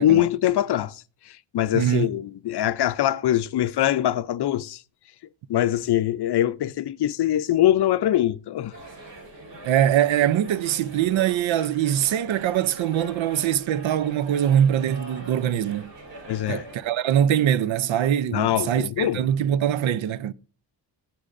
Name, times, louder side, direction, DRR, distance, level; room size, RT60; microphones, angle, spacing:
voice 1, 0.0-4.8 5.5-8.8 16.3-16.7 18.3-19.2, left 12 dB, 60° left, 0.5 m, -23 dB
voice 2, 1.7-2.1 9.6-15.9 16.5-20.3, right 10 dB, 85° right, 0.6 m, -23 dB
sound 1, 8.7-16.8, right 2 dB, 65° right, 4.3 m, -42 dB
16.5 x 7.9 x 2.5 m
wide cardioid pair, 140°, 46 cm